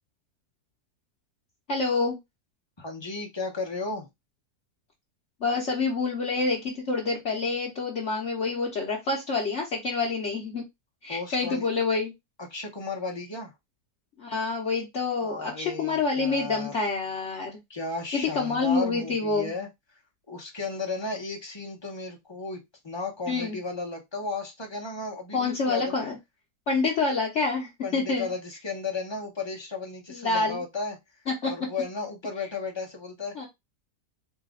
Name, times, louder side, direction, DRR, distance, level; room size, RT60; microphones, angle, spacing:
voice 1, 1.7-2.2 5.4-10.6 11.0-12.1 14.2-17.6 18.1-19.5 23.3-23.6 25.3-26.2 26.7-28.3 30.1-30.6 31.4-31.5 33.4-33.5, left 4 dB, 50° left, -2 dB, 1.1 m, -27 dB
voice 2, 2.8-4.1 11.1-11.7 12.5-13.5 15.2-16.9 17.7-19.7 20.3-26.0 27.8-31.0 31.4-33.3, left 3 dB, 25° left, 1 dB, 0.6 m, -34 dB
4.1 x 2.4 x 3.7 m, 0.19 s
omnidirectional pair, 1.8 m